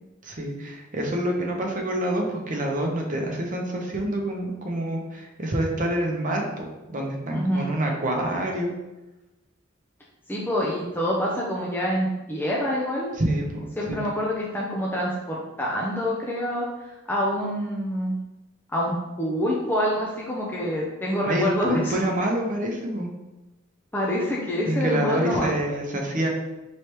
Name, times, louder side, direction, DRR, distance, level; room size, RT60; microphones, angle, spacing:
voice 1, 0.2-8.7 13.2-14.0 21.2-23.1 24.7-26.3, right 1 dB, 40° right, 0 dB, 0.8 m, -27 dB
voice 2, 7.3-7.7 10.3-13.1 13.8-16.7 17.1-18.2 18.7-22.1 23.9-25.5, equal, 10° left, -4 dB, 0.5 m, -26 dB
4.9 x 3.2 x 2.9 m, 1.0 s
head